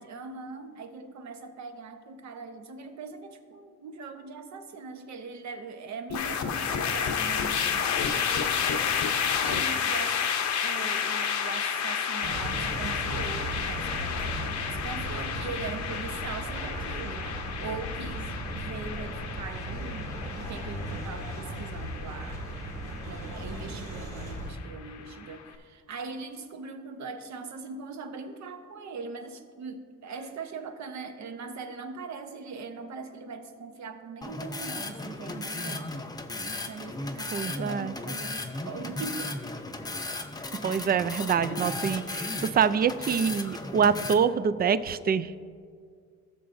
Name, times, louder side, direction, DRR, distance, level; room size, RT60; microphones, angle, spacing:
voice 1, 0.0-9.0 9.4-10.2 10.6-17.3 17.6-20.1 20.4-22.5 23.0-35.9 36.7-39.4, right 4 dB, 65° right, 6 dB, 1.0 m, -41 dB
sound 1, 6.1-25.3, left 7 dB, 65° left, 0.8 m, -31 dB
sound 2, 12.2-24.5, right 1 dB, 85° right, 2.0 m, -36 dB
sound 3, 34.2-44.1, left 2 dB, 15° left, 0.6 m, -36 dB
voice 2, 37.3-37.9 40.6-45.4, right 7 dB, 30° right, 15 dB, 0.4 m, -25 dB
16.0 x 6.9 x 2.6 m, 2.1 s
cardioid pair, 90°, 30 cm